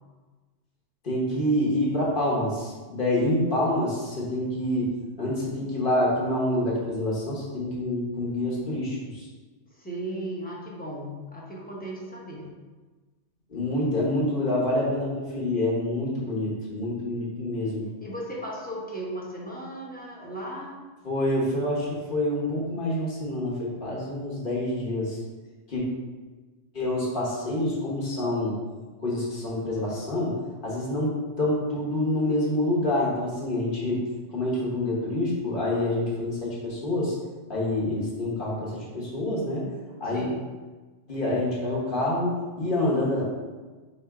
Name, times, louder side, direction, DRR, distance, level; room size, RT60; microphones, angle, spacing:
voice 1, 1.0-4.9 5.2-9.2 13.5-17.9 21.0-25.2 25.7-25.8 26.7-28.6 29.0-30.3 30.6-31.1 31.4-34.0 34.3-37.1 37.5-39.7 40.0-40.2 41.1-43.2, left 1 dB, 45° left, -5 dB, 1.3 m, -27 dB
voice 2, 9.8-12.5 18.0-20.8 40.0-40.4, right 1 dB, 10° left, -4 dB, 0.7 m, -36 dB
3.5 x 3.2 x 4.7 m, 1.3 s
omnidirectional pair, 1.3 m